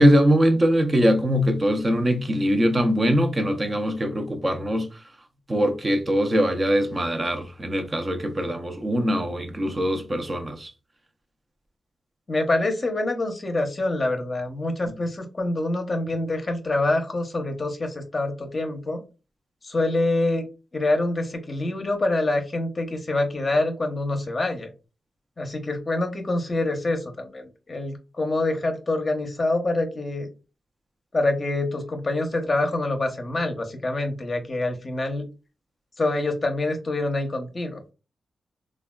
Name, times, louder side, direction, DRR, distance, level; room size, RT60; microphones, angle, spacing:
voice 1, 0.0-4.9 5.5-10.7, equal, 25° right, 0.6 m, -22 dB
voice 2, 12.3-19.0 19.6-20.5 20.7-24.7 25.4-30.3 31.1-35.3 36.0-37.8, left 2 dB, 35° left, 0.7 m, -26 dB
3.4 x 2.3 x 2.2 m
cardioid pair, 85°, 0 cm